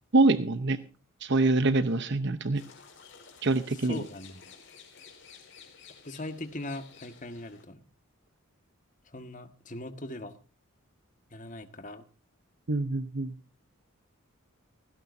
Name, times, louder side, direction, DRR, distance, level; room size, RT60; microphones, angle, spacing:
voice 1, 0.1-0.8 1.2-2.6 3.4-4.0 12.7-13.3, right 2 dB, 55° right, 12 dB, 0.8 m, -25 dB
sound 1, 2.6-7.6, left 6 dB, 55° left, 4.9 m, -53 dB
voice 2, 3.7-4.4 6.0-7.8 9.0-10.4 11.3-12.0, left 1 dB, 35° left, 9 dB, 1.6 m, -40 dB
17.5 x 16.0 x 2.7 m, 0.34 s
head